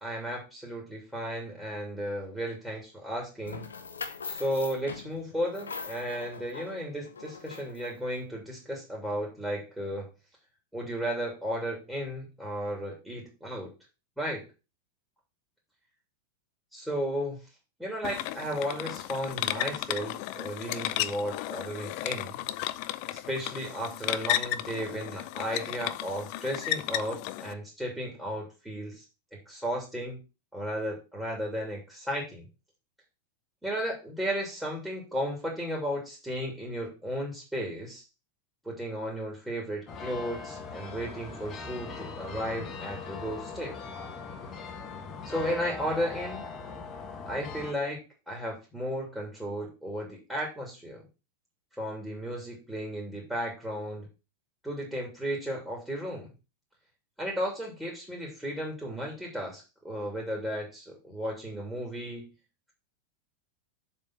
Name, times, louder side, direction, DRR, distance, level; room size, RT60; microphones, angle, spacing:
voice 1, 0.0-3.6 4.2-10.1 10.7-13.7 14.2-14.4 16.7-17.4 17.8-22.4 23.1-29.0 29.5-30.2 30.5-32.4 33.6-38.0 38.6-43.8 45.2-46.4 47.3-51.0 51.8-54.1 54.6-56.3 57.2-62.3, equal, 5° right, -2 dB, 2.8 m, -34 dB
sound 1, 3.5-8.2, left 5 dB, 70° left, 1.0 m, -41 dB
sound 2, 18.0-27.5, left 14 dB, 45° left, 0.5 m, -34 dB
sound 3, 39.9-47.7, left 4 dB, 25° left, 1.5 m, -40 dB
7.0 x 4.5 x 5.8 m, 0.29 s
figure-of-eight pair, 90°, 0 cm